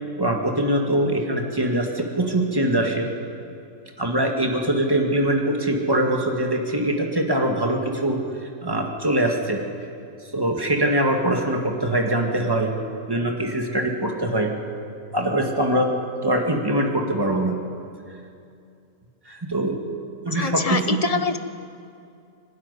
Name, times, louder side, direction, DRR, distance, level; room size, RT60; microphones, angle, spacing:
voice 1, 0.2-3.1 4.0-9.6 10.3-12.7 13.1-14.5 15.1-15.9 16.2-17.5 19.3-19.8 20.2-21.0, right 1 dB, 15° right, 2 dB, 2.0 m, -23 dB
voice 2, 20.3-21.4, left 4 dB, 35° left, 9 dB, 0.7 m, -24 dB
24.5 x 12.0 x 9.9 m, 2.5 s
omnidirectional pair, 1.6 m